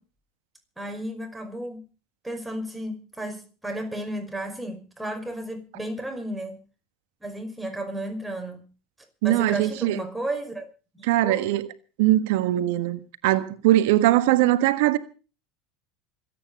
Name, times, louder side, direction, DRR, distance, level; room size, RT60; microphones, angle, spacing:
voice 1, 0.8-1.8 2.2-6.6 7.2-8.7 9.2-10.6 10.9-11.5, right 1 dB, 5° right, 5.5 m, -33 dB
voice 2, 9.2-10.0 11.1-11.7 12.0-15.0, right 15 dB, 70° right, 1.4 m, -21 dB
26.0 x 9.3 x 5.4 m
hypercardioid pair, 85°, 0 cm